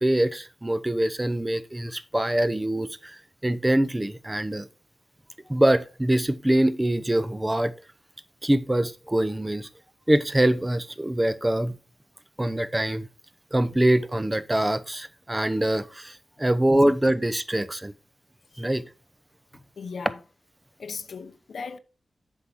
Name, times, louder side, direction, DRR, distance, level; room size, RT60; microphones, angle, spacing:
voice 1, 0.0-4.7 5.5-7.7 8.4-9.7 10.1-11.7 12.4-13.1 13.5-17.9 18.6-18.8, right 1 dB, 15° right, 0.7 m, -24 dB
voice 2, 19.5-20.2 20.8-21.8, left 5 dB, 75° left, 0.7 m, -37 dB
7.9 x 5.6 x 4.5 m
cardioid pair, 70°, 0 cm